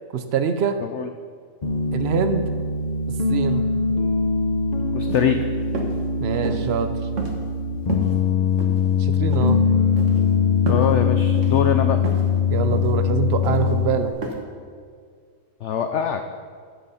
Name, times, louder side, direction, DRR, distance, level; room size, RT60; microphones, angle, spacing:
voice 1, 0.1-0.8 1.9-2.4 3.3-3.7 6.2-6.9 9.0-9.6 12.5-14.2, right 7 dB, 80° right, 8 dB, 0.5 m, -24 dB
Piano, 1.6-14.1, left 5 dB, 40° left, 0.6 m, -22 dB
voice 2, 4.9-5.4 10.7-12.0 15.6-16.3, left 8 dB, 80° left, 7 dB, 0.6 m, -23 dB
sound 1, 5.0-5.3 5.7-6.0 6.4-6.8 7.2-7.6 7.9-8.1 8.6-9.0 9.3-9.5 10.0-10.2 10.7-10.9 11.3-11.6 12.0-12.3 12.7-12.9 13.4-13.7 14.2-14.3, right 2 dB, 50° right, 1.4 m, -31 dB
10.5 x 7.8 x 5.6 m, 2.1 s
omnidirectional pair, 1.8 m